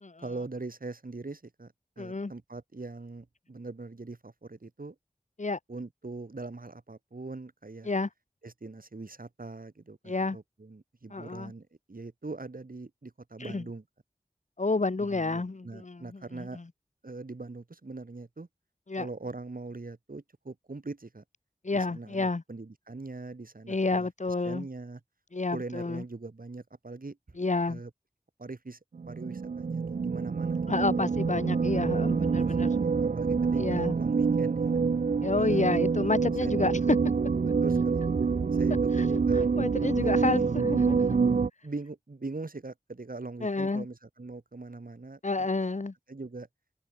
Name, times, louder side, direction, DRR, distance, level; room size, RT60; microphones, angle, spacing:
voice 1, 0.2-5.0 5.7-7.9 8.4-13.8 15.0-16.6 17.0-18.5 19.0-21.2 21.7-25.0 25.5-27.4 27.7-27.9 28.4-28.8 29.1-30.6 32.2-34.8 35.4-35.6 36.4-36.5 37.6-38.0 38.5-39.5 39.8-40.5 41.6-45.5 46.1-46.5, right 3 dB, 80° right, 5.2 m, -42 dB
voice 2, 2.0-2.3 5.4-5.6 7.8-8.1 10.0-10.4 11.1-11.5 13.4-13.6 14.6-16.6 18.9-19.1 21.6-22.4 23.7-24.7 25.3-26.0 27.4-27.8 30.7-32.7 33.6-33.9 35.2-36.7 39.0-41.2 43.4-43.8 45.2-45.9, left 3 dB, 55° left, 1.1 m, -30 dB
sound 1, 28.9-41.5, right 5 dB, 65° right, 0.5 m, -26 dB
wide cardioid pair, 50°, 14 cm